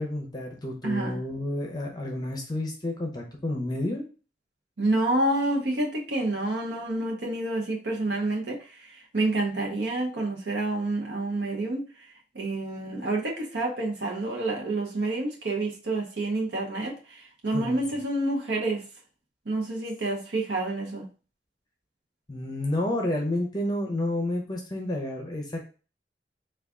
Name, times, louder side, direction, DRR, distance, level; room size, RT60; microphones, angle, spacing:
voice 1, 0.0-4.0 17.5-17.8 22.3-25.7, left 1 dB, 25° left, 0.6 m, -30 dB
voice 2, 0.8-1.2 4.8-11.8 12.3-18.9 19.5-21.1, right 2 dB, 85° right, 0.7 m, -28 dB
3.5 x 2.3 x 3.6 m
head